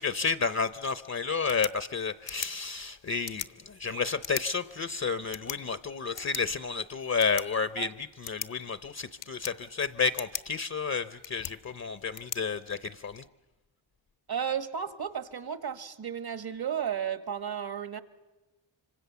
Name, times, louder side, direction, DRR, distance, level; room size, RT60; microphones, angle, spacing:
voice 1, 0.0-13.2, left 5 dB, 35° left, 0.7 m, -31 dB
sound 1, 1.3-13.3, left 9 dB, 65° left, 0.9 m, -43 dB
voice 2, 14.3-18.0, right 8 dB, 55° right, 1.5 m, -33 dB
25.5 x 25.5 x 6.9 m
cardioid pair, 80°, 46 cm